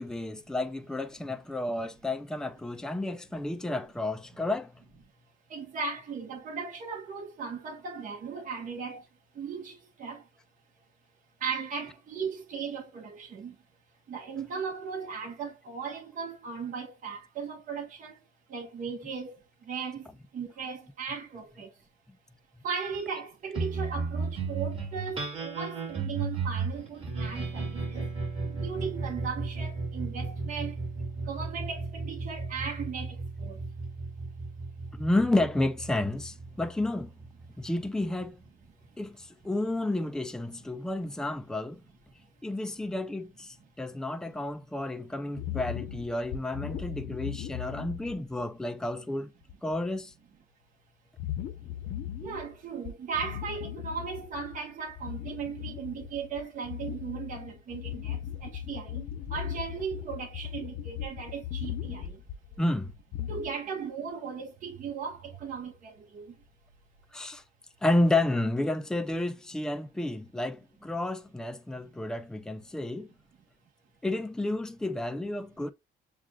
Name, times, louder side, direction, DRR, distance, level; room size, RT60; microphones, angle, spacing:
voice 1, 0.0-4.7 34.9-37.1 37.6-38.4 39.0-41.8 42.4-49.3 49.6-50.1 62.6-62.9 67.1-67.4 67.8-73.1 74.0-75.7, left 2 dB, 5° left, 0.5 m, -31 dB
voice 2, 5.5-9.0 9.4-10.2 11.4-13.5 14.1-18.1 18.5-19.4 19.7-20.1 20.3-21.7 22.6-28.0 28.5-30.7 31.3-33.1 33.4-33.6 52.2-59.0 59.3-62.2 63.3-66.3, right 6 dB, 50° right, 1.4 m, -37 dB
sound 1, 23.5-38.2, right 4 dB, 35° right, 2.5 m, -35 dB
sound 2, 45.3-48.4 48.9-49.0 49.4-49.7 51.2-52.6 52.8-54.6 54.9-63.5, left 10 dB, 70° left, 0.9 m, -38 dB
7.3 x 2.4 x 2.4 m
cardioid pair, 110°, 17 cm